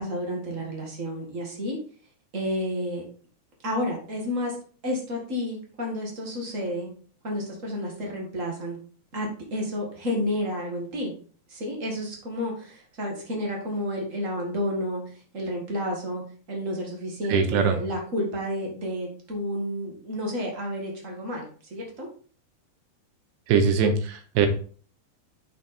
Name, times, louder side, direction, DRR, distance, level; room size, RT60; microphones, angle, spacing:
voice 1, 0.0-1.8 2.3-3.0 3.6-4.6 4.8-6.9 7.2-8.8 9.1-11.1 11.5-15.0 15.3-16.2 16.5-21.4 21.7-22.1, equal, 60° right, 0 dB, 0.8 m, -30 dB
voice 2, 17.3-17.8 23.5-24.5, right 6 dB, 85° right, 6 dB, 3.1 m, -22 dB
7.3 x 5.9 x 4.2 m, 0.42 s
omnidirectional pair, 4.7 m